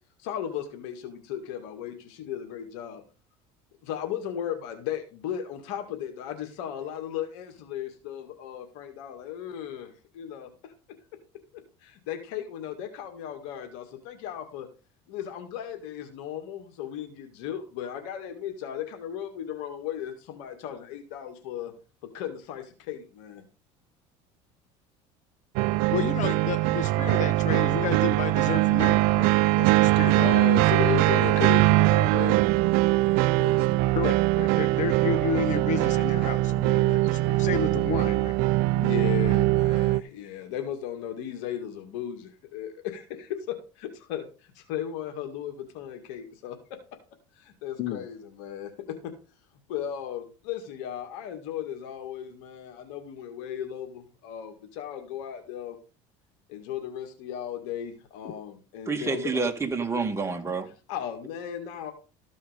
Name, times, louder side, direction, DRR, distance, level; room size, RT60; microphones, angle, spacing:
voice 1, 0.2-3.0 3.8-10.7 11.8-14.7 15.1-21.7 22.1-23.4 30.2-33.7 38.7-44.3 44.6-46.8 47.3-49.1 49.7-55.8 56.5-59.4 60.9-61.9, left 9 dB, 75° left, 2.1 m, -36 dB
sound 1, 25.6-40.0, right 18 dB, 70° right, 0.5 m, -22 dB
voice 2, 25.9-29.3 29.6-30.3 33.9-38.3 47.8-48.0, left 7 dB, 50° left, 1.3 m, -31 dB
voice 3, 58.9-60.7, right 4 dB, 15° right, 2.1 m, -28 dB
14.0 x 5.4 x 5.2 m
supercardioid pair, 95°, 16 cm